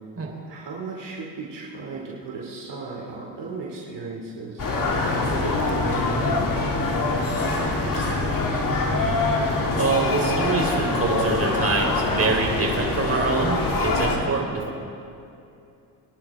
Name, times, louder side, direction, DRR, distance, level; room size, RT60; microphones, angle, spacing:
voice 1, 0.5-4.7 5.1-6.4 7.0-8.4, right 3 dB, 60° right, -3 dB, 2.7 m, -36 dB
sound 1, 4.6-14.2, left 2 dB, 40° left, 2.4 m, -24 dB
voice 2, 9.7-14.6, right 3 dB, 30° right, -1 dB, 3.9 m, -25 dB
sound 2, 11.2-13.0, left 2 dB, 75° left, 3.0 m, -43 dB
23.5 x 11.0 x 3.6 m, 2.6 s
supercardioid pair, 75°, 48 cm